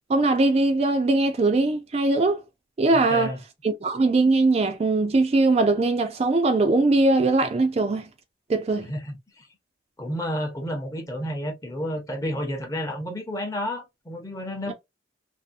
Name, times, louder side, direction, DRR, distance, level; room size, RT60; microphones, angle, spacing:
voice 1, 0.1-2.4 2.8-3.3 3.6-8.1 8.5-8.9 14.7-14.8, right 2 dB, 35° right, 0.3 m, -21 dB
voice 2, 2.9-3.4 8.8-9.5 10.0-14.7, equal, 15° left, 0.6 m, -31 dB
2.6 x 2.0 x 2.4 m
head